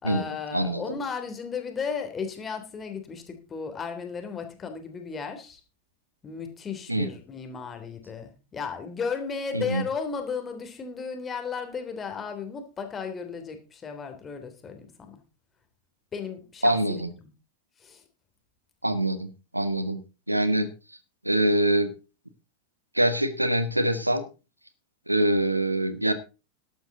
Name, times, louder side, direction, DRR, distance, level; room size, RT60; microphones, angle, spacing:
voice 1, 0.0-5.6 6.2-15.2 16.1-16.8 17.8-18.0, left 5 dB, 20° left, 6 dB, 3.4 m, -34 dB
voice 2, 0.5-0.8 6.9-7.1 9.5-9.8 16.6-17.1 18.8-20.7 21.2-21.9 22.9-24.3 25.1-26.1, right 1 dB, 85° right, 13 dB, 1.3 m, -24 dB
14.0 x 11.5 x 3.9 m, 0.31 s
figure-of-eight pair, 90°, 0 cm